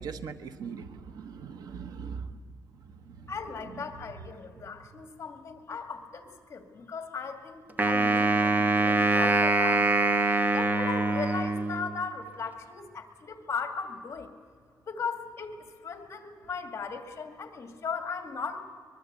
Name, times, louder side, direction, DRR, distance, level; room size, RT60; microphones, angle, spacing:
voice 1, 0.0-2.4 3.0-3.3 3.7-3.8, right 6 dB, 85° right, 11 dB, 1.1 m, -40 dB
voice 2, 3.3-14.3 14.9-18.6, left 5 dB, 45° left, 7 dB, 2.4 m, -37 dB
Wind instrument woodwind instrument, 7.8-12.1, right 2 dB, 25° right, 1.0 m, -24 dB
23.5 x 21.5 x 8.2 m, 2.1 s
wide cardioid pair, 140°, 7 cm